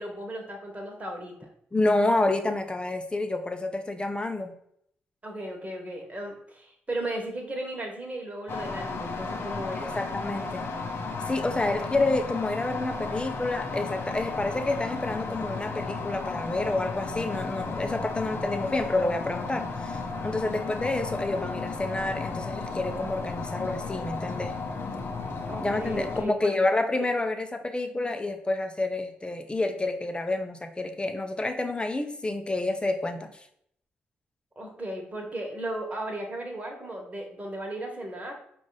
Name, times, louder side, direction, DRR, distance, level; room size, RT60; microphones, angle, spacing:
voice 1, 0.0-1.5 5.2-9.9 25.5-26.5 34.5-38.4, right 1 dB, 30° right, 1 dB, 1.5 m, -35 dB
voice 2, 1.7-4.5 9.8-10.7 11.3-24.5 25.6-33.5, left 2 dB, 20° left, 7 dB, 0.7 m, -29 dB
sound 1, 8.5-26.3, left 4 dB, 55° left, 0.7 m, -34 dB
4.8 x 2.5 x 4.0 m, 0.70 s
hypercardioid pair, 45°, 5 cm